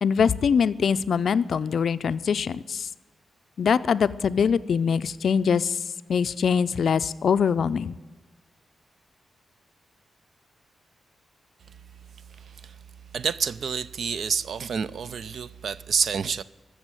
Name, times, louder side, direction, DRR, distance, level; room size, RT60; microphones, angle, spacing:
voice 1, 0.0-2.9 3.6-5.8 6.1-7.9, left 6 dB, 60° left, 0.4 m, -23 dB
voice 2, 13.1-16.4, right 6 dB, 60° right, 0.4 m, -28 dB
13.5 x 7.1 x 9.0 m
wide cardioid pair, 155°, 0 cm